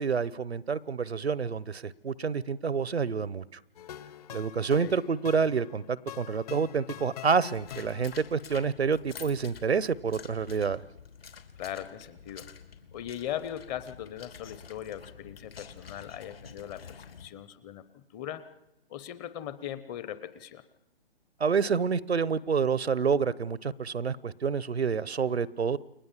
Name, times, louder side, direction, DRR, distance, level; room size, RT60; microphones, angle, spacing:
voice 1, 0.0-3.4 4.3-10.8 21.4-25.8, right 5 dB, 85° right, 21 dB, 1.0 m, -28 dB
sound 1, 3.7-8.4, left 11 dB, 40° left, 1.1 m, -45 dB
sound 2, 7.5-17.3, left 6 dB, 65° left, 3.1 m, -49 dB
voice 2, 11.6-12.5 12.9-18.4 18.9-20.6, left 11 dB, 15° left, 14 dB, 0.8 m, -39 dB
29.5 x 22.0 x 7.4 m, 0.90 s
figure-of-eight pair, 140°, 31 cm